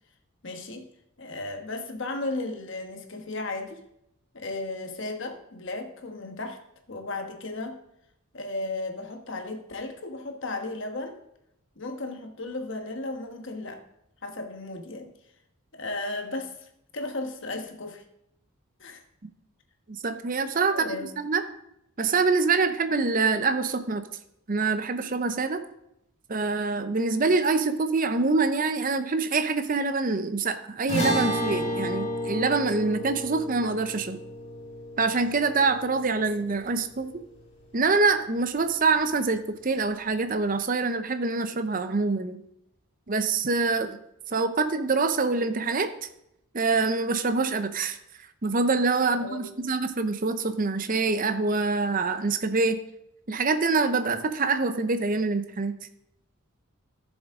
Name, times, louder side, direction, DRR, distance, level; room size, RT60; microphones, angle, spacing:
voice 1, 0.4-0.9 1.2-3.8 4.3-6.6 6.9-7.8 8.3-11.1 11.8-13.8 14.2-15.1 15.7-16.7 16.9-18.0 18.8-19.0 20.7-21.1 49.2-49.5, left 2 dB, 55° left, 5 dB, 1.3 m, -35 dB
voice 2, 20.0-20.8 21.2-21.4 22.0-24.0 24.5-25.6 26.3-34.2 35.0-37.2 37.7-42.4 43.1-44.0 44.3-45.9 46.5-48.0 48.4-52.8 53.3-55.7, right 4 dB, 35° right, 9 dB, 0.6 m, -25 dB
sound 1, 30.9-37.4, equal, 30° left, 3.2 m, -32 dB
13.5 x 7.2 x 3.6 m, 0.81 s
head